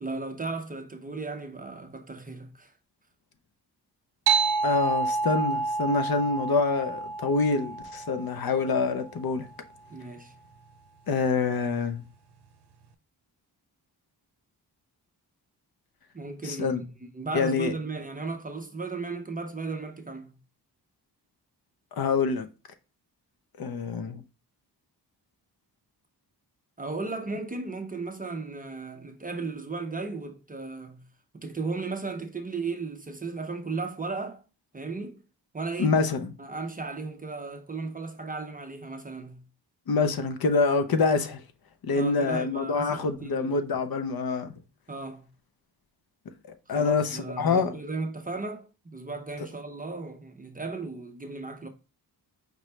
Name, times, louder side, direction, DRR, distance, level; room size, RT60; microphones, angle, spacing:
voice 1, 0.0-2.7 9.9-10.3 16.1-20.4 26.8-31.0 31.3-34.4 34.7-35.2 35.5-36.0 36.4-39.4 41.9-43.6 44.9-45.3 46.7-51.7, right 3 dB, 20° right, 0.4 m, -35 dB
sound 1, 4.3-9.2, right 4 dB, 70° right, 0.6 m, -29 dB
voice 2, 4.6-9.5 11.1-12.0 16.4-16.8 17.3-17.7 22.0-22.5 23.6-24.2 35.8-36.3 39.9-41.4 41.8-44.5 46.7-47.7, left 4 dB, 60° left, 0.7 m, -26 dB
5.1 x 3.1 x 3.1 m
wide cardioid pair, 180°, 41 cm